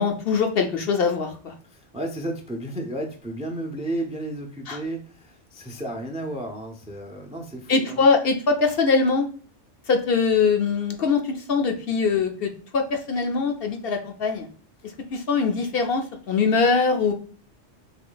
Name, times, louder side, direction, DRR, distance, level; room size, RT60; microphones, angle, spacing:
voice 1, 0.0-1.5 4.7-4.8 7.7-9.3 9.9-14.5 15.1-17.1, left 4 dB, 60° left, 4 dB, 0.8 m, -22 dB
voice 2, 1.7-8.1 14.8-14.9, right 1 dB, 10° right, 3 dB, 0.3 m, -33 dB
3.8 x 3.1 x 3.8 m, 0.43 s
omnidirectional pair, 1.3 m